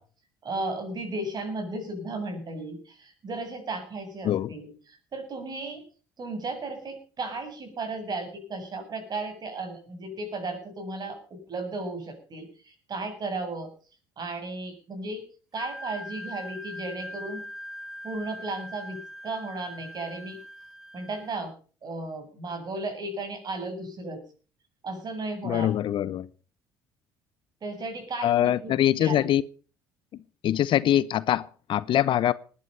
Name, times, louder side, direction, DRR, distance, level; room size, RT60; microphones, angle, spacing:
voice 1, 0.4-5.8 6.2-13.7 14.2-15.2 15.5-17.4 18.0-20.4 20.9-21.5 21.8-24.2 24.8-25.7 27.6-29.3, right 2 dB, 40° right, 7.9 m, -35 dB
Wind instrument woodwind instrument, 15.5-21.4, equal, 5° right, 3.2 m, -41 dB
voice 2, 25.4-26.3 28.2-29.4 30.4-32.3, left 11 dB, 55° left, 0.9 m, -23 dB
19.5 x 11.5 x 5.7 m
hypercardioid pair, 60°, 10 cm